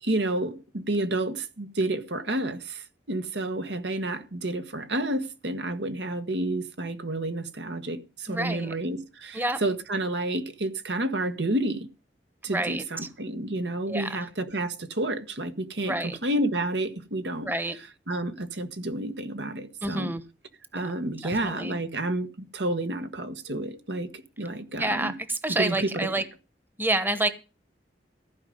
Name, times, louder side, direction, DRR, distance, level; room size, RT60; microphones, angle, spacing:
voice 1, 0.0-11.9 12.4-17.5 18.1-20.1 20.7-25.1 25.5-26.1, right 1 dB, 75° right, 1.5 m, -30 dB
voice 2, 8.3-8.7 9.3-9.6 12.5-12.8 13.9-14.3 15.8-16.2 17.4-17.7 19.8-20.2 20.7-20.8 21.2-21.8 24.7-26.2 26.8-27.3, right 2 dB, 10° right, 1.1 m, -28 dB
15.0 x 5.3 x 9.4 m
head